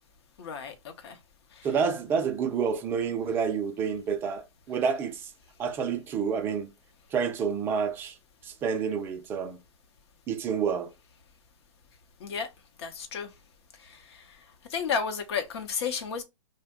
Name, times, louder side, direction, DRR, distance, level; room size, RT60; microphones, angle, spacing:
voice 1, 0.4-0.7 1.0-1.2 1.6-1.7 12.2-12.5 12.8-13.3 13.8-14.2 14.7-16.2, left 6 dB, 50° left, 0.7 m, -32 dB
voice 2, 1.6-5.3 5.6-6.7 7.1-8.2 8.4-9.6 10.3-10.9, right 6 dB, 15° right, 0.3 m, -29 dB
2.7 x 2.1 x 3.4 m
hypercardioid pair, 130°, 17 cm